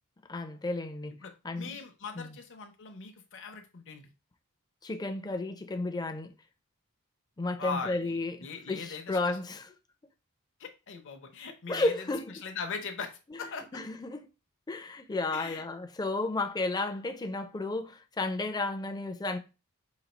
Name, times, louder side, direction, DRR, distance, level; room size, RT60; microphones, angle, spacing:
voice 1, 0.3-1.2 1.4-1.8 2.1-2.4 4.8-6.3 7.4-9.7 11.7-12.4 13.7-14.2 14.7-19.4, left 2 dB, 20° left, 0.4 m, -33 dB
voice 2, 1.2-4.1 7.6-9.4 10.6-12.0 12.4-13.1 13.4-13.7 15.3-15.6, left 5 dB, 60° left, 0.6 m, -40 dB
4.0 x 2.3 x 4.2 m
head